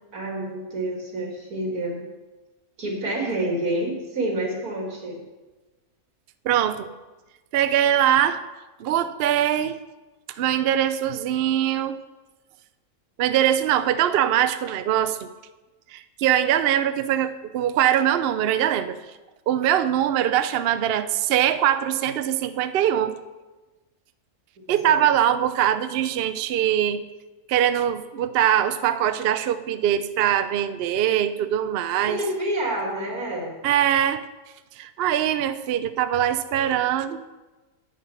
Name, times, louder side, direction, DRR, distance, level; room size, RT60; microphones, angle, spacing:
voice 1, 0.1-2.0 2.8-5.2 24.7-24.9 32.0-33.5, right 1 dB, 85° right, 0 dB, 2.8 m, -28 dB
voice 2, 6.4-6.9 7.5-8.4 8.8-9.8 10.4-12.0 13.2-15.3 15.9-19.0 19.5-23.2 24.7-27.0 27.5-32.2 33.6-34.3 34.8-37.2, right 10 dB, 65° right, 12 dB, 0.6 m, -22 dB
9.1 x 8.9 x 5.6 m, 1.2 s
omnidirectional pair, 1.5 m